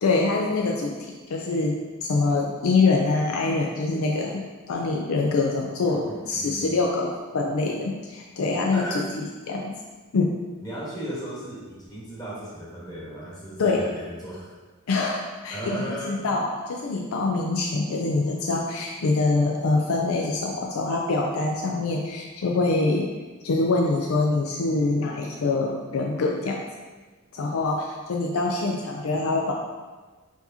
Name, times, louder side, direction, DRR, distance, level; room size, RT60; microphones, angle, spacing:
voice 1, 0.0-9.8 10.1-10.3 13.6-13.9 14.9-23.1 23.4-26.6 27.3-29.5, left 3 dB, 75° left, 0 dB, 0.4 m, -25 dB
voice 2, 5.8-6.7 8.7-9.1 10.6-14.5 15.5-16.2, right 1 dB, 20° left, -6 dB, 1.2 m, -36 dB
4.5 x 4.2 x 2.7 m, 1.3 s
head